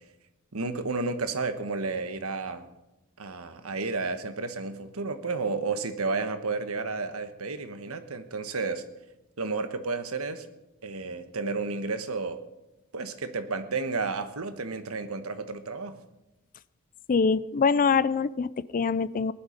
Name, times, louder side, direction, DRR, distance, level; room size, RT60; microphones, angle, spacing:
voice 1, 0.5-2.6 3.2-8.8 9.4-10.5 10.8-12.4 12.9-16.0, right 3 dB, 80° right, 9 dB, 1.3 m, -32 dB
voice 2, 17.1-19.3, left 5 dB, 40° left, 17 dB, 0.4 m, -24 dB
19.0 x 11.5 x 5.2 m, 0.99 s
head